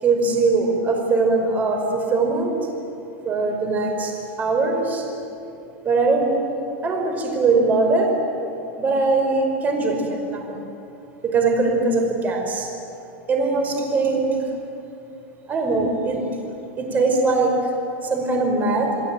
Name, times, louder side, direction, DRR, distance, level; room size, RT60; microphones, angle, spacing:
voice 1, 0.0-2.7 3.2-5.1 5.8-6.4 6.8-8.2 8.8-10.6 11.2-12.7 13.3-14.5 15.5-16.3 16.8-17.7 18.0-19.0, right 3 dB, 25° right, 3 dB, 5.3 m, -21 dB
28.5 x 20.0 x 9.3 m, 2.8 s
supercardioid pair, 140°, 7 cm